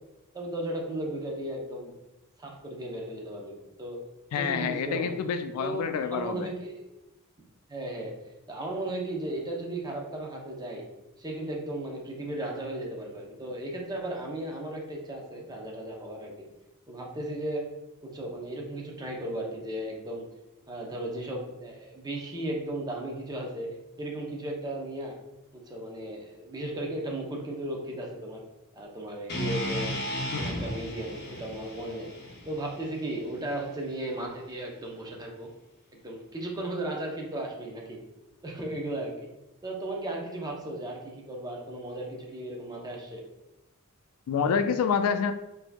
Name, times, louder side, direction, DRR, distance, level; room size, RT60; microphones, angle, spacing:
voice 1, 0.3-1.9 2.4-4.0 4.4-5.1 5.6-6.8 7.7-8.1 8.5-10.8 11.2-16.5 16.9-17.6 18.0-20.2 20.7-23.7 24.0-25.1 25.5-28.4 28.8-30.0 30.4-32.1 32.5-35.5 35.9-38.0 38.4-39.1 39.6-43.2, right 1 dB, 20° right, 0 dB, 0.6 m, -35 dB
voice 2, 4.3-6.5 30.3-30.4 44.3-45.3, left 6 dB, 90° left, 10 dB, 0.3 m, -27 dB
sound 1, 29.3-33.5, left 1 dB, 50° left, 0.7 m, -35 dB
4.2 x 2.7 x 2.2 m, 0.94 s
head